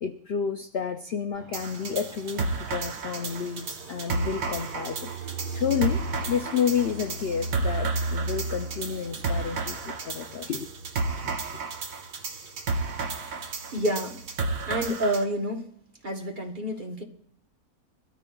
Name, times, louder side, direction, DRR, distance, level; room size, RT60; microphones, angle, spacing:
voice 1, 0.0-6.0 6.3-10.7 11.2-11.3, left 7 dB, 60° left, 6 dB, 0.6 m, -30 dB
Fixed-wing aircraft airplane, 1.3-14.9, right 2 dB, 90° right, 1.7 m, -38 dB
sound 1, 1.5-15.2, right 3 dB, 65° right, 1.3 m, -33 dB
voice 2, 13.7-14.2 14.7-15.7 16.0-17.0, right 1 dB, 35° right, 2 dB, 1.1 m, -28 dB
22.5 x 13.5 x 2.3 m, 0.64 s
omnidirectional pair, 1.6 m